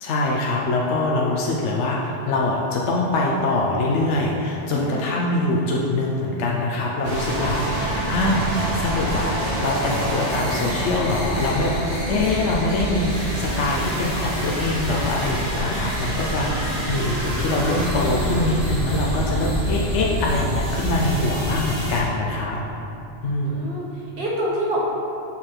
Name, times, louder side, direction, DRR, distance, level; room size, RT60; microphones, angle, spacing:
voice 1, 0.0-9.3 9.6-22.6 23.2-23.6, left 2 dB, 75° left, -3 dB, 1.0 m, -24 dB
voice 2, 4.7-5.1 12.0-12.3 16.8-17.6 21.3-21.7 23.4-24.8, right 1 dB, 55° right, -4 dB, 1.5 m, -29 dB
sound 1, 7.0-22.0, right 1 dB, 30° right, 1.5 m, -26 dB
6.6 x 5.5 x 4.4 m, 2.9 s
omnidirectional pair, 1.2 m